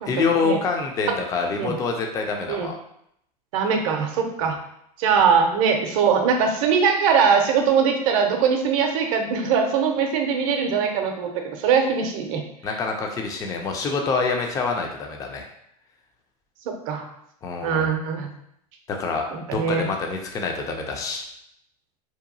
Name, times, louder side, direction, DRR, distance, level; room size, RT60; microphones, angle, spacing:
voice 1, 0.1-2.8 12.6-15.5 17.4-17.9 18.9-21.2, left 4 dB, 15° left, 2 dB, 0.3 m, -26 dB
voice 2, 3.5-4.6 5.0-12.4 16.9-17.0 17.6-18.3 19.3-19.8, right 6 dB, 55° right, 3 dB, 0.6 m, -21 dB
2.8 x 2.3 x 2.6 m, 0.74 s
hypercardioid pair, 110°, 20 cm